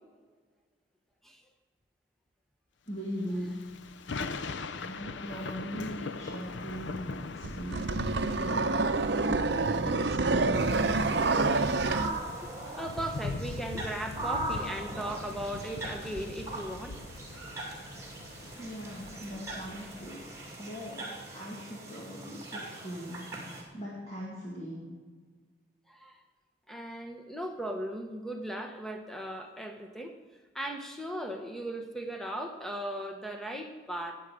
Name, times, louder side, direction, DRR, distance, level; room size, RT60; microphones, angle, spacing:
voice 1, 2.9-3.7 4.8-8.6 9.1-11.3 18.6-20.3 20.6-23.3 23.7-25.0, equal, 35° left, -5 dB, 2.1 m, -40 dB
Thunder / Rain, 3.2-20.7, left 3 dB, 80° left, 0.6 m, -42 dB
sound 1, 7.4-12.1, right 3 dB, 65° right, 0.7 m, -27 dB
sound 2, 10.5-23.6, right 2 dB, 15° right, 2.4 m, -40 dB
voice 2, 12.8-17.0 25.9-26.2 26.7-30.1 30.5-34.1, right 1 dB, ahead, 4 dB, 1.1 m, -37 dB
18.5 x 7.6 x 4.9 m, 1.5 s
head